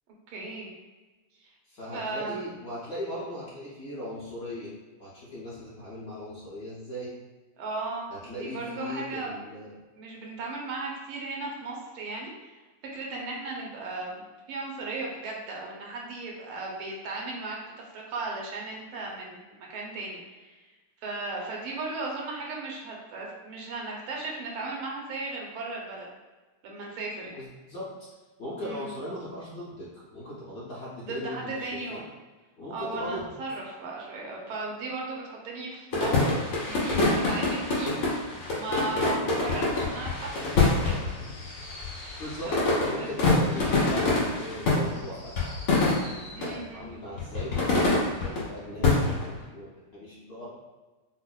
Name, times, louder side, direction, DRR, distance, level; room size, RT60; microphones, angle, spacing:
voice 1, 0.3-0.7 1.4-1.5 1.9-2.5 7.6-9.4 10.0-12.3 12.9-14.2 14.5-20.5 21.0-26.1 26.6-27.4 28.6-28.9 31.0-32.0 32.7-38.2 38.6-41.0 42.5-42.7 43.0-43.3 46.3-46.9, right 3 dB, 80° right, -2 dB, 1.6 m, -36 dB
voice 2, 1.7-4.7 5.0-7.1 8.1-9.7 27.3-27.9 28.4-32.0 32.6-33.3 42.2-42.5 42.8-45.3 46.2-50.5, left 1 dB, 55° left, -8 dB, 1.1 m, -38 dB
sound 1, 35.9-46.5 47.2-48.4 48.8-49.4, left 2 dB, 75° left, 2.3 m, -26 dB
5.8 x 2.1 x 2.3 m, 1.2 s
omnidirectional pair, 2.4 m